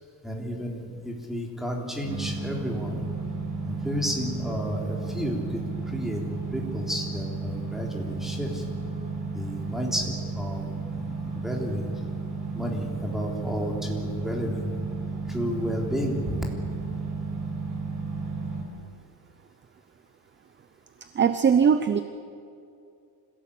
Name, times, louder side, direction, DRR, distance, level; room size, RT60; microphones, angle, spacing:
voice 1, 0.2-3.0 3.7-5.6 5.9-6.2 6.5-8.6 9.3-11.9 12.5-14.7 15.3-16.4, equal, ahead, 0 dB, 3.5 m, -32 dB
sound 1, 2.0-18.6, right 3 dB, 50° right, 6.5 m, -33 dB
voice 2, 21.1-22.0, right 7 dB, 30° right, 11 dB, 0.7 m, -20 dB
25.5 x 17.0 x 8.5 m, 2.5 s
cardioid pair, 150°, 39 cm